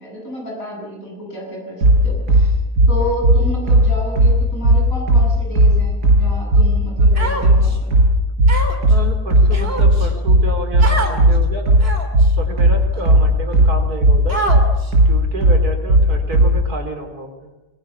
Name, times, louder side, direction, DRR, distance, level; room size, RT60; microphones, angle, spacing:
voice 1, 0.0-2.6 2.9-7.9, equal, 55° left, -1 dB, 8.7 m, -30 dB
sound 1, 1.8-16.6, right 1 dB, 85° right, 5.1 m, -13 dB
Human voice, 7.2-7.8 8.5-8.9 9.5-10.1 10.8-11.2 11.8-12.2 12.9-13.0 14.3-14.9, right 2 dB, 40° right, 3.2 m, -24 dB
voice 2, 8.9-11.8 12.4-14.4 15.1-17.5, right 1 dB, 70° right, 5 dB, 4.2 m, -29 dB
24.5 x 22.5 x 7.2 m, 1.1 s
omnidirectional pair, 1.7 m